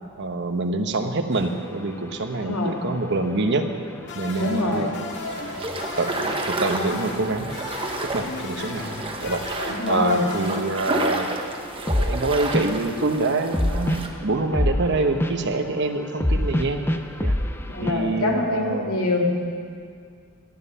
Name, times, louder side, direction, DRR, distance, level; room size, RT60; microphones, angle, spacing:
voice 1, 0.2-3.7 4.1-4.9 6.0-7.5 8.1-8.8 9.2-11.3 11.9-16.8 17.2-17.3 17.8-18.9, right 3 dB, 55° right, 6 dB, 1.0 m, -26 dB
sound 1, 1.3-17.9, left 1 dB, 10° left, 0.6 m, -30 dB
voice 2, 2.3-2.8 4.4-4.9 9.7-10.2 17.7-19.5, left 2 dB, 75° left, 0 dB, 2.3 m, -24 dB
sound 2, 4.0-11.3, left 2 dB, 50° left, 2.4 m, -35 dB
sound 3, 5.1-14.1, right 2 dB, 25° right, 1.1 m, -31 dB
17.5 x 12.0 x 5.6 m, 2.2 s
head